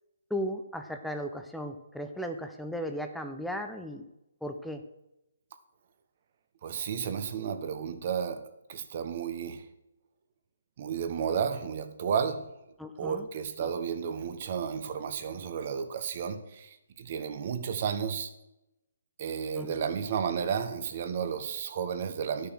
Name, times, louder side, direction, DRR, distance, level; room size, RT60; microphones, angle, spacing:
voice 1, 0.3-4.0 4.4-4.8 12.8-13.3 13.6-13.7 19.6-19.9, equal, ahead, 0.7 m, -36 dB
voice 2, 6.6-9.6 10.8-12.5 13.0-18.3 19.2-22.5, right 7 dB, 40° right, 1.2 m, -32 dB
11.5 x 6.8 x 6.3 m
hypercardioid pair, 160°, 0 cm